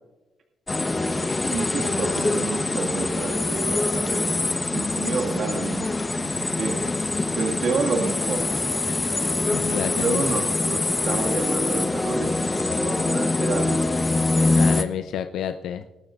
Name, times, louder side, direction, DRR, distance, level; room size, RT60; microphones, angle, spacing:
sound 1, 0.7-14.8, left 2 dB, 20° left, 0.9 m, -24 dB
voice 1, 1.5-4.3 4.7-5.9 6.6-6.8 7.4-8.5 9.9-12.4 12.8-13.8, right 4 dB, 60° right, 0 dB, 1.8 m, -29 dB
voice 2, 9.5-10.2 14.5-15.8, left 9 dB, 80° left, 8 dB, 0.5 m, -29 dB
21.0 x 12.0 x 2.4 m, 1.1 s
cardioid pair, 90°, 0 cm